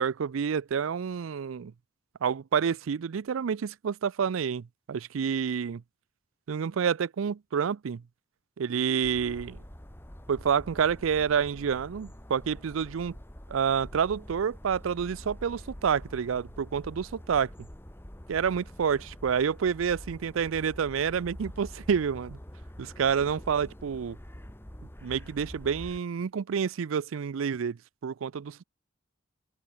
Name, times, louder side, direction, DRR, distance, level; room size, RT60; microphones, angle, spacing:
voice 1, 0.0-1.7 2.2-5.8 6.5-8.0 8.6-9.6 10.3-13.1 13.5-17.5 18.3-22.4 22.8-24.2 25.0-28.6, right 7 dB, 80° right, 0.4 m, -28 dB
sound 1, 9.0-26.0, equal, 10° left, 1.7 m, -46 dB
open air
head